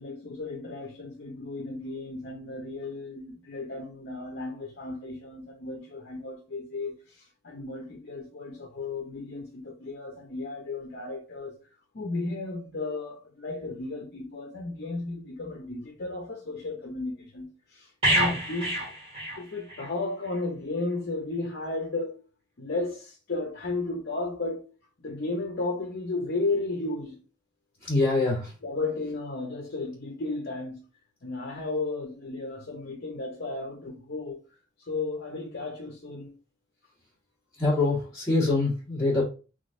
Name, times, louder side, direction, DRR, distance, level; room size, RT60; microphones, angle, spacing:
voice 1, 0.0-11.5 11.9-18.9 19.4-22.2 22.6-24.6 25.0-27.2 28.6-30.8 31.2-34.4 34.9-36.4, left 3 dB, 55° left, 0.7 m, -34 dB
sound 1, 18.0-19.9 20.2-20.4, right 1 dB, 30° right, 1.9 m, -27 dB
voice 2, 27.8-28.5 37.6-39.2, left 2 dB, 5° left, 1.8 m, -24 dB
3.7 x 3.1 x 2.6 m
head